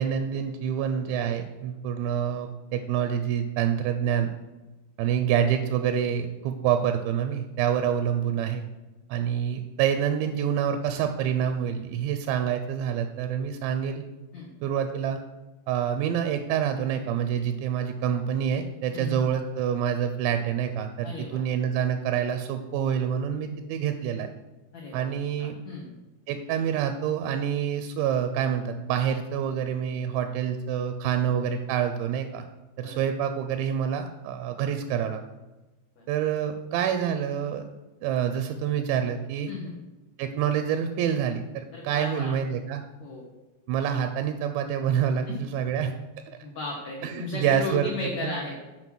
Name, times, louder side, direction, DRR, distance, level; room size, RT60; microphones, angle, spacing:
voice 1, 0.0-4.3 5.0-8.7 9.1-14.0 14.6-15.2 15.7-24.3 24.9-25.6 26.3-32.4 32.8-35.2 36.1-37.6 38.0-39.5 40.2-42.8 43.7-45.9 47.0-48.3, right 8 dB, 85° right, 8 dB, 2.8 m, -27 dB
voice 2, 18.9-19.3 21.0-21.4 24.7-25.0 25.4-25.9 32.8-33.0 36.0-36.1 39.5-39.7 41.7-42.3 43.0-43.2 45.2-45.4 46.4-48.6, left 2 dB, 80° left, -3 dB, 1.6 m, -35 dB
7.9 x 5.5 x 6.0 m, 1.1 s
omnidirectional pair, 5.2 m